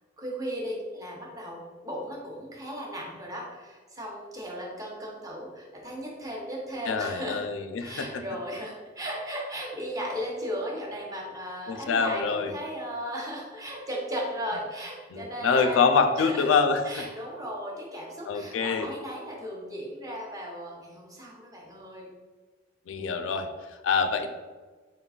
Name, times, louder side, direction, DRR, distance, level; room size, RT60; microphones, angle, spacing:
voice 1, 0.2-7.4 7.8-15.9 16.2-16.4 16.9-22.1, equal, 20° right, -2 dB, 0.7 m, -36 dB
voice 2, 6.9-8.2 11.7-12.5 15.1-17.1 18.3-18.9 22.9-24.3, left 5 dB, 85° left, 8 dB, 0.4 m, -25 dB
4.1 x 3.8 x 2.3 m, 1.4 s
head